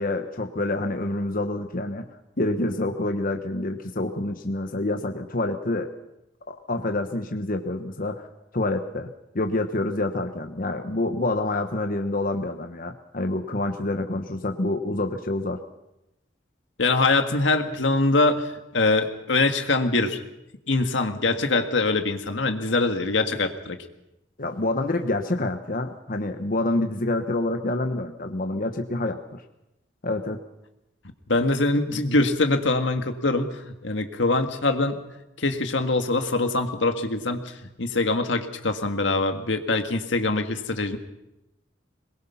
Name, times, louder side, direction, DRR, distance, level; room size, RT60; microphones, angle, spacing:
voice 1, 0.0-2.0 2.4-5.9 6.5-8.3 8.5-9.1 9.3-15.6 24.4-29.4 30.0-30.4, left 2 dB, 50° left, 5 dB, 1.2 m, -27 dB
voice 2, 16.8-18.5 18.7-20.2 20.7-23.8 31.3-35.0 35.4-37.4 37.8-41.0, left 2 dB, 80° left, 6 dB, 1.8 m, -23 dB
22.5 x 21.0 x 5.8 m, 0.89 s
head